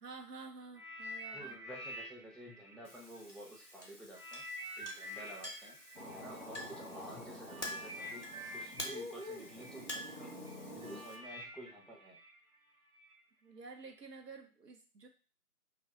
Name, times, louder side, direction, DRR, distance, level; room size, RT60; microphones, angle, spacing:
voice 1, 0.0-1.6 13.4-15.1, right 4 dB, 90° right, 5 dB, 0.8 m, -50 dB
sound 1, 0.7-3.7 4.1-13.1 13.8-14.0, equal, 65° right, 1.0 m, -48 dB
voice 2, 1.3-4.4 4.8-5.8 6.1-10.4 10.7-12.2, equal, ahead, -3 dB, 0.5 m, -51 dB
Chink clink, 2.8-11.2, left 1 dB, 50° left, 0.5 m, -48 dB
sound 2, 5.9-11.0, left 1 dB, 40° right, 0.8 m, -48 dB
2.2 x 2.2 x 2.7 m, 0.36 s
figure-of-eight pair, 180°, 47 cm